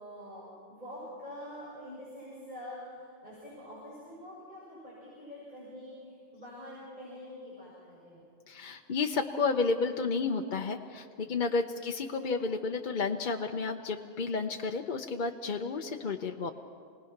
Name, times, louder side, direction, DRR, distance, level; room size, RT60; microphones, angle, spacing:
voice 1, 0.0-8.2 11.5-11.8, left 1 dB, 40° right, -8 dB, 6.9 m, -46 dB
voice 2, 8.5-16.5, left 4 dB, 50° left, 4 dB, 0.9 m, -31 dB
28.5 x 19.5 x 5.9 m, 2.2 s
omnidirectional pair, 1.1 m